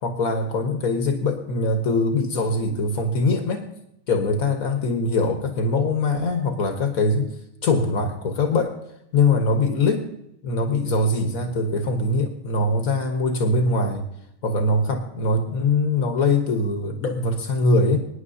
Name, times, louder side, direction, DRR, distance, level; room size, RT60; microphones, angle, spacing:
voice 1, 0.0-3.7 4.1-7.3 7.6-8.7 9.1-10.1 10.4-14.1 14.4-18.0, left 2 dB, 85° left, 5 dB, 1.6 m, -22 dB
24.0 x 10.0 x 2.7 m, 0.78 s
omnidirectional pair, 1.5 m